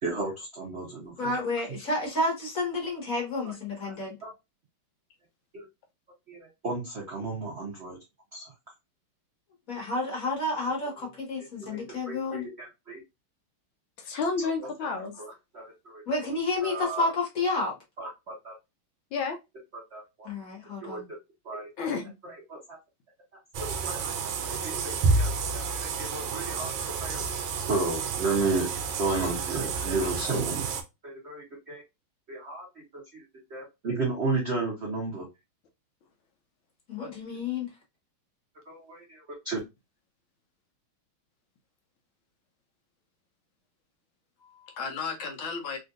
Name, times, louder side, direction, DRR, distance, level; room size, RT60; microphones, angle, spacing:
voice 1, 0.0-1.3 3.4-3.5 3.8-3.9 4.2-4.3 5.5-5.7 6.3-8.0 8.3-8.5 11.7-13.0 14.4-14.9 15.2-16.0 16.6-17.1 18.0-18.5 19.9-20.3 20.8-21.0 21.4-21.9 22.2-22.8 23.6-26.7 27.0-27.2 27.7-28.7 29.0-30.7 31.0-31.8 32.3-33.2 33.5-35.3 38.7-39.6, right 3 dB, 60° right, 0.7 m, -33 dB
voice 2, 1.2-4.1 9.7-12.4 16.1-17.7 20.2-21.1 36.9-37.7, left 2 dB, 45° left, 1.5 m, -30 dB
voice 3, 14.0-15.2 19.1-19.4 21.8-22.1 29.1-29.3 44.4-45.8, left 4 dB, 75° left, 1.3 m, -32 dB
sound 1, 23.5-30.8, right 4 dB, 75° right, 1.3 m, -30 dB
3.7 x 2.5 x 2.4 m
omnidirectional pair, 2.4 m